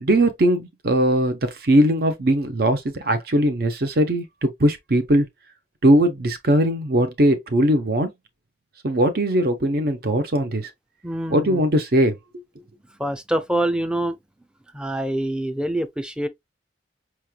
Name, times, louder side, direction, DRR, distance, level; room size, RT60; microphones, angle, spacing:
voice 1, 0.0-5.3 5.8-8.1 8.8-10.7 11.3-12.1, right 1 dB, 60° right, 0.8 m, -20 dB
voice 2, 11.0-11.6 13.0-14.2 14.7-16.3, right 1 dB, 5° right, 0.5 m, -25 dB
5.8 x 3.1 x 2.3 m
head